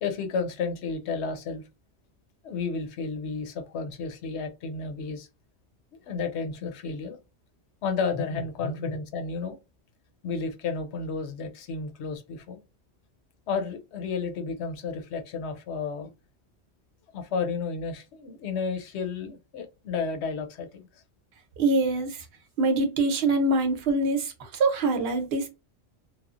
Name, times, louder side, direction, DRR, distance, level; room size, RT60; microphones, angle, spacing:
voice 1, 0.0-1.6 2.4-5.3 6.1-7.2 7.8-9.6 10.2-12.6 13.5-16.1 17.1-20.9, left 5 dB, 70° left, 0.9 m, -32 dB
voice 2, 21.6-22.3 22.6-25.5, right 2 dB, 60° right, 0.9 m, -24 dB
3.0 x 2.0 x 2.4 m
omnidirectional pair, 1.2 m